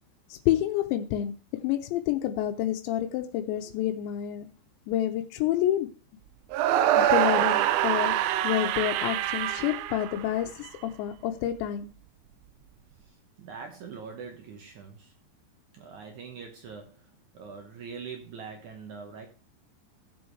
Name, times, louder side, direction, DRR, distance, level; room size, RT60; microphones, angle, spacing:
voice 1, 0.3-1.3 1.6-4.5 4.9-5.9 7.0-8.1 8.4-11.9, left 12 dB, 85° left, 6 dB, 3.0 m, -28 dB
sound 1, 6.5-10.7, right 12 dB, 90° right, 2.9 m, -25 dB
voice 2, 13.0-15.1 15.7-17.1 17.3-19.3, right 5 dB, 70° right, 4 dB, 1.9 m, -43 dB
16.0 x 7.1 x 3.2 m, 0.35 s
omnidirectional pair, 5.0 m